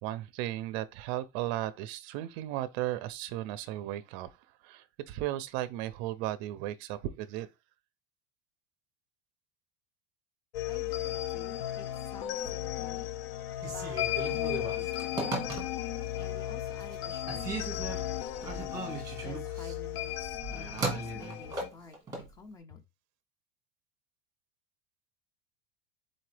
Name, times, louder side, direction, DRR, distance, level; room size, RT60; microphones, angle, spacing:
voice 1, 0.0-4.3 4.6-7.5, right 14 dB, 45° right, 0.4 m, -35 dB
sound 1, 10.5-21.7, left 12 dB, 70° left, 0.6 m, -35 dB
voice 2, 10.7-13.1 13.7-15.7 16.2-18.8 19.2-20.1 20.5-22.8, left 3 dB, 10° left, 0.4 m, -51 dB
Telephone, 13.5-16.0 16.5-17.0 17.3-22.3, right 3 dB, 10° right, 1.3 m, -37 dB
4.1 x 3.8 x 3.2 m
supercardioid pair, 165°, 32 cm